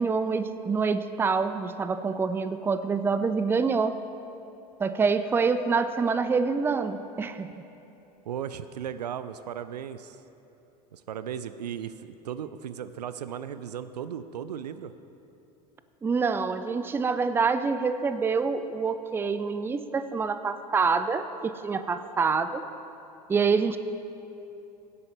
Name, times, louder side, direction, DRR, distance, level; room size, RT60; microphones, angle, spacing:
voice 1, 0.0-4.0 4.8-7.5 16.0-22.6 23.3-23.8, right 5 dB, 10° right, 11 dB, 0.4 m, -26 dB
voice 2, 8.3-10.2 10.9-14.9, right 9 dB, 80° right, 13 dB, 0.4 m, -36 dB
17.0 x 7.9 x 3.4 m, 2.9 s
figure-of-eight pair, 80°, 21 cm